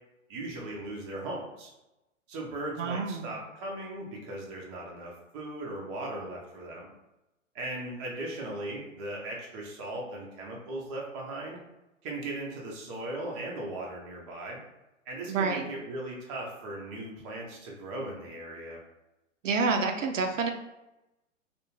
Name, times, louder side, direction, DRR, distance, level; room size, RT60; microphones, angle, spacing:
voice 1, 0.3-1.7 2.3-6.9 7.5-11.6 12.0-14.6 15.1-18.8, right 1 dB, 25° right, -2 dB, 0.5 m, -38 dB
voice 2, 2.8-3.4 15.3-15.7 19.4-20.5, right 4 dB, 70° right, 4 dB, 0.5 m, -28 dB
2.4 x 2.2 x 3.0 m, 0.95 s
figure-of-eight pair, 115°, 39 cm